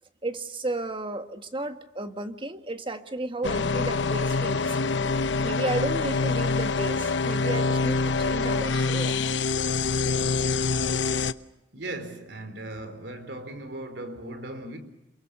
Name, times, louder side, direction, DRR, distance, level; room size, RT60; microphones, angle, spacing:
voice 1, 0.2-4.8 5.1-5.2 5.4-9.2, right 2 dB, 30° right, 1.7 m, -33 dB
sound 1, 3.4-11.3, left 4 dB, 85° left, 0.8 m, -25 dB
voice 2, 11.7-14.8, right 1 dB, 70° right, 4.1 m, -37 dB
28.0 x 23.5 x 6.9 m
head